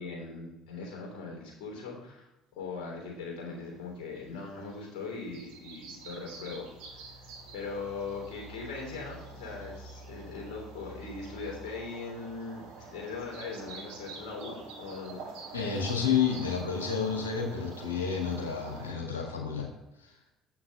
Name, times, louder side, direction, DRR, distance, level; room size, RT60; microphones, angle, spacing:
voice 1, 0.0-6.7 7.5-15.2, left 4 dB, 65° left, -2 dB, 3.4 m, -40 dB
sound 1, 4.3-18.9, right 3 dB, 70° right, 1.8 m, -46 dB
voice 2, 15.5-19.7, left 6 dB, 90° left, 0 dB, 1.8 m, -30 dB
7.7 x 6.0 x 5.4 m, 0.95 s
hypercardioid pair, 60°, 0 cm